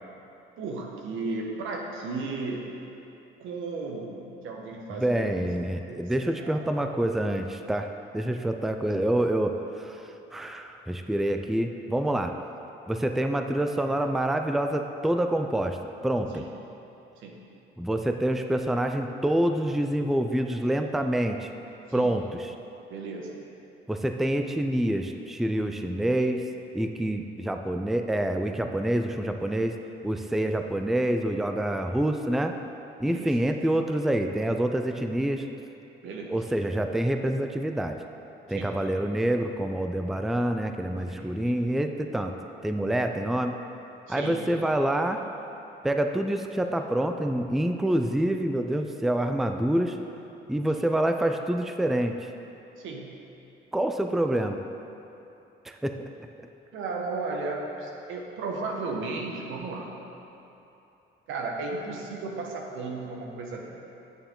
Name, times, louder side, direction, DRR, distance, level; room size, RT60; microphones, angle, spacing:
voice 1, 0.6-2.7 3.4-5.3 5.9-6.0 6.4-6.6 16.3-16.5 17.2-17.4 21.9-22.2 22.9-23.3 33.0-33.4 36.0-36.4 38.5-38.8 41.1-41.7 44.1-44.5 52.8-53.1 56.7-60.0 61.3-63.8, right 3 dB, 90° right, 0 dB, 1.2 m, -35 dB
voice 2, 4.9-7.9 8.1-12.3 12.9-15.8 16.0-16.4 17.8-21.5 21.9-22.5 23.9-26.4 26.7-29.7 30.0-32.5 33.0-35.4 36.3-38.0 38.5-42.3 42.6-43.5 44.1-45.2 45.8-50.0 50.5-52.3 53.7-54.6 55.7-56.1, right 1 dB, ahead, 5 dB, 0.4 m, -27 dB
9.2 x 6.8 x 3.7 m, 2.9 s
cardioid pair, 90°, 20 cm